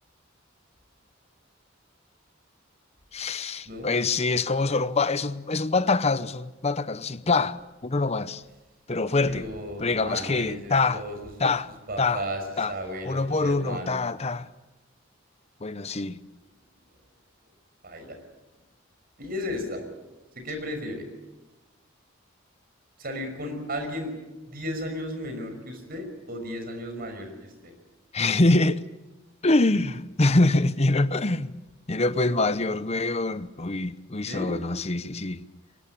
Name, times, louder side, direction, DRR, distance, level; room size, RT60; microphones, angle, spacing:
voice 1, 3.1-8.4 8.9-9.5 9.8-11.0 11.4-11.7 12.0-12.2 12.6-12.7 13.0-14.5 15.6-16.2 28.1-28.8 29.4-31.5 31.9-35.4, left 3 dB, 30° left, 0.9 m, -25 dB
voice 2, 9.3-11.3 11.9-12.4 12.7-14.0 17.8-18.1 19.2-19.8 20.3-21.0 23.0-24.1 24.5-27.7 32.2-32.4 34.2-34.6, equal, 50° right, 5.9 m, -34 dB
23.5 x 20.0 x 8.6 m
head